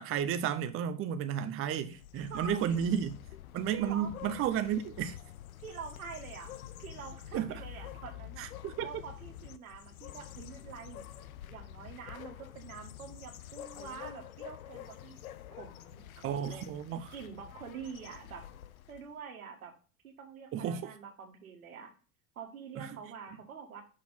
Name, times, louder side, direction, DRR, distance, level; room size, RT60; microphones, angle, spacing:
voice 1, 0.0-3.1 3.5-5.2 7.3-7.6 8.4-8.9 16.2-17.1 20.5-20.9 22.8-23.0, right 8 dB, 35° right, 0.7 m, -33 dB
sound 1, 1.8-19.1, left 11 dB, 85° left, 0.6 m, -48 dB
voice 2, 2.3-2.8 3.7-4.1 5.6-6.5 6.8-11.0 11.5-15.2 15.6-16.7 17.1-18.4 18.9-19.7 20.0-21.9 22.3-23.8, right 6 dB, 85° right, 1.7 m, -46 dB
6.2 x 4.3 x 5.6 m
hypercardioid pair, 85°, 41 cm